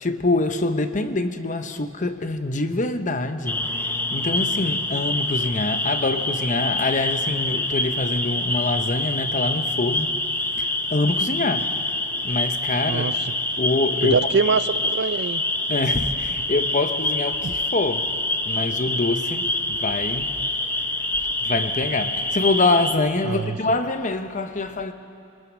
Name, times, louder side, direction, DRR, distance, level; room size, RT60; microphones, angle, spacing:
voice 1, 0.0-3.6 4.1-10.1 10.6-11.7 12.2-13.1 13.6-14.2 15.7-18.1 18.4-20.4 21.4-24.9, left 2 dB, 40° left, 0.9 m, -25 dB
sound 1, 3.5-22.9, left 2 dB, 10° left, 0.8 m, -26 dB
voice 2, 14.0-15.4 23.2-23.6, right 5 dB, 55° right, 0.5 m, -23 dB
22.5 x 20.5 x 6.2 m
head